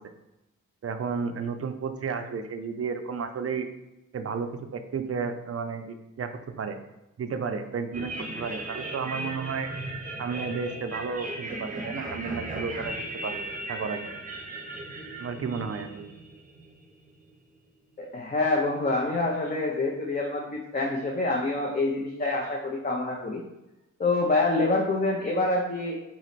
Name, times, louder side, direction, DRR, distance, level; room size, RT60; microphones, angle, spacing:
voice 1, 0.8-3.7 4.1-6.8 7.2-9.7 10.2-14.1 15.2-16.1, right 5 dB, 45° right, 8 dB, 0.4 m, -32 dB
sound 1, 7.9-17.3, right 1 dB, 25° right, 0.8 m, -37 dB
voice 2, 18.0-23.4 24.0-26.0, left 2 dB, 30° left, -1 dB, 0.6 m, -26 dB
4.0 x 3.1 x 4.1 m, 0.97 s
wide cardioid pair, 130°, 33 cm